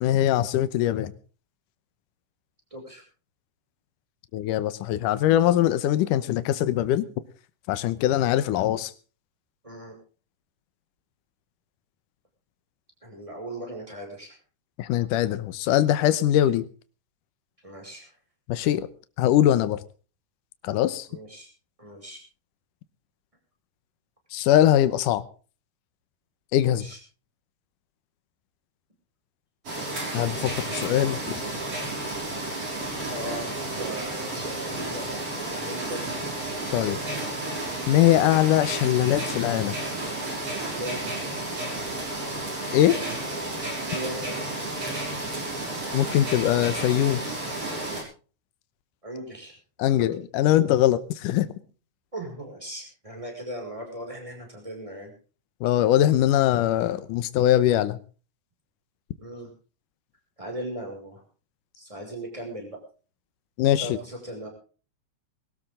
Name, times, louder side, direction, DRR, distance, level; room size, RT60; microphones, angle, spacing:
voice 1, 0.0-1.1 4.3-7.1 7.7-8.9 14.8-16.7 18.5-18.9 19.2-19.8 20.6-21.1 24.3-25.2 26.5-26.9 30.1-31.4 36.7-37.0 37.9-39.7 42.7-43.0 45.9-47.2 49.8-51.5 55.6-58.0 63.6-64.0, left 12 dB, 80° left, 14 dB, 2.4 m, -22 dB
voice 2, 2.7-3.0 9.6-9.9 13.0-14.4 17.6-18.1 21.1-21.5 21.8-22.2 26.6-27.0 33.1-36.4 39.5-39.6 40.7-41.2 43.8-44.4 49.0-49.6 52.1-55.1 59.2-59.5 60.4-61.2 61.8-62.8 63.8-64.5, right 1 dB, 10° right, 2 dB, 5.9 m, -38 dB
sound 1, 29.7-48.0, right 2 dB, 45° right, 6.9 m, -32 dB
21.5 x 13.5 x 3.8 m, 0.38 s
omnidirectional pair, 3.8 m